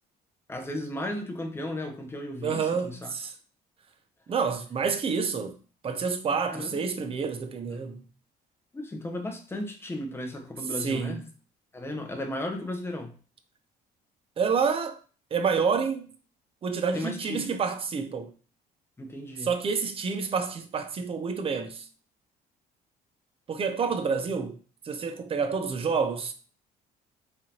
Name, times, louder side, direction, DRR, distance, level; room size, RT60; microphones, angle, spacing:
voice 1, 0.5-3.1 5.1-5.2 6.5-6.8 7.7-7.8 8.7-11.2 11.7-13.1 16.9-17.5 19.0-19.5, left 1 dB, 15° left, 0.8 m, -35 dB
voice 2, 2.4-3.3 4.3-5.6 5.8-8.1 10.8-11.2 14.4-15.0 15.3-16.1 16.6-18.3 19.4-21.9 23.5-24.6 24.8-26.3, right 5 dB, 35° right, 0.6 m, -28 dB
3.6 x 3.3 x 2.9 m
cardioid pair, 110°, 17 cm